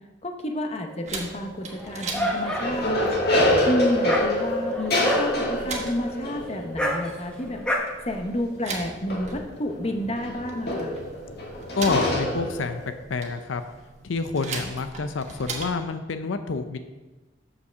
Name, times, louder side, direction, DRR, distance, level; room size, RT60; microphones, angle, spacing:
voice 1, 0.2-3.2 3.7-7.6 8.1-10.9, left 1 dB, 35° left, 4 dB, 0.9 m, -30 dB
sound 1, 0.9-1.4 2.1-12.9, left 1 dB, 55° left, 1.9 m, -27 dB
sound 2, 1.1-15.8, right 4 dB, 35° right, 1.2 m, -40 dB
Dog, 1.7-7.8, equal, 5° left, 1.2 m, -30 dB
voice 2, 11.8-13.6 14.0-16.8, left 4 dB, 85° left, 9 dB, 0.6 m, -28 dB
6.8 x 5.6 x 6.8 m, 1.2 s
head